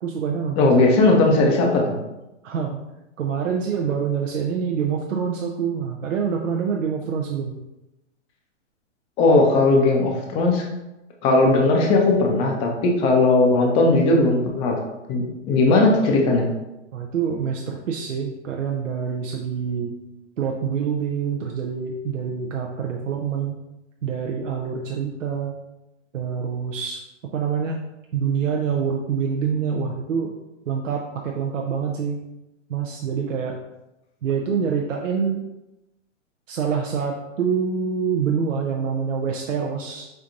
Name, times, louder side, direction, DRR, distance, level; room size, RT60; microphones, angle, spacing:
voice 1, 0.0-0.7 2.4-2.8 3.2-7.6 16.9-20.0 20.4-23.6 24.0-25.5 26.1-27.0 27.3-27.8 28.1-30.3 30.7-32.2 32.7-33.6 34.2-35.4 36.5-40.1, right 6 dB, 90° right, 1 dB, 0.6 m, -26 dB
voice 2, 0.6-1.9 9.2-10.6 11.2-14.7 15.1-16.5, left 2 dB, 15° left, 1 dB, 0.4 m, -18 dB
4.4 x 3.8 x 2.5 m, 0.97 s
hypercardioid pair, 135°, 37 cm